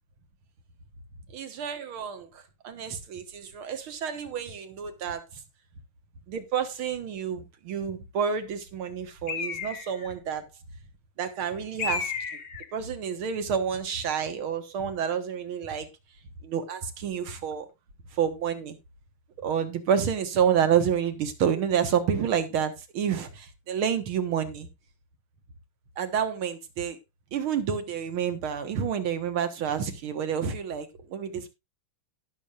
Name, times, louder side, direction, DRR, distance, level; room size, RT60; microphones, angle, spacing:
voice 1, 1.3-5.2 6.3-10.4 11.2-12.1 12.7-15.9 16.4-17.7 18.1-18.8 19.4-24.7 26.0-27.0 27.3-31.5, right 8 dB, 70° right, 9 dB, 2.2 m, -29 dB
Bird, 9.3-10.1 11.8-12.7, left 6 dB, 50° left, 0.9 m, -32 dB
17.5 x 6.8 x 2.4 m, 0.23 s
omnidirectional pair, 2.4 m